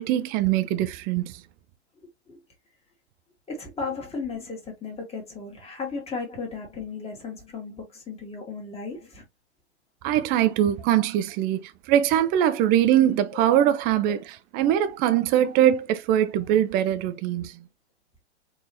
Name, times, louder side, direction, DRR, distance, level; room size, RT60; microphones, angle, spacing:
voice 1, 0.0-1.3 10.0-17.5, right 11 dB, 30° right, 0.5 m, -22 dB
voice 2, 3.5-9.2 13.3-13.5 14.1-14.2, left 4 dB, 15° left, 1.7 m, -35 dB
4.6 x 2.8 x 2.9 m
hypercardioid pair, 105°, 34 cm